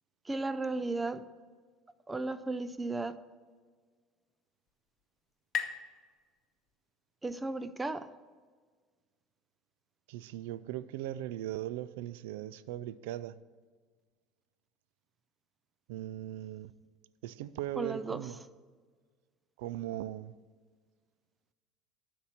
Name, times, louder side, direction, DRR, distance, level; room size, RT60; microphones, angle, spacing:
voice 1, 0.3-1.2 2.1-3.2 7.2-8.1 17.8-18.3, right 2 dB, 15° right, 0.5 m, -35 dB
sound 1, 4.1-7.4, left 8 dB, 35° left, 1.0 m, -43 dB
voice 2, 10.1-13.4 15.9-16.7 17.2-18.4 19.6-20.3, right 13 dB, 85° right, 0.3 m, -39 dB
12.0 x 4.3 x 5.8 m
supercardioid pair, 120°, 0 cm